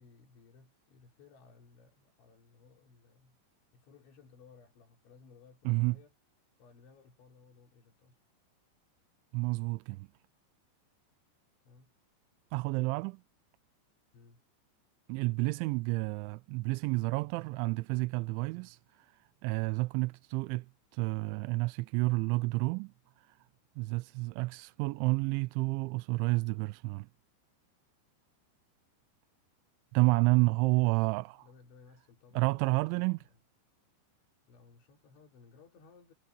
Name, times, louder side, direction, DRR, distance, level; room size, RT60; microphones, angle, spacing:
voice 1, 0.0-3.4 3.7-6.1 6.6-8.2 11.7-11.9 14.1-14.4 30.1-33.4 34.5-36.1, left 5 dB, 70° left, 6.2 m, -59 dB
voice 2, 5.7-6.0 9.3-10.1 12.5-13.2 15.1-20.7 20.9-23.4 23.8-27.1 29.9-31.3 32.4-33.2, right 24 dB, 85° right, 2.9 m, -30 dB
omnidirectional pair, 5.5 m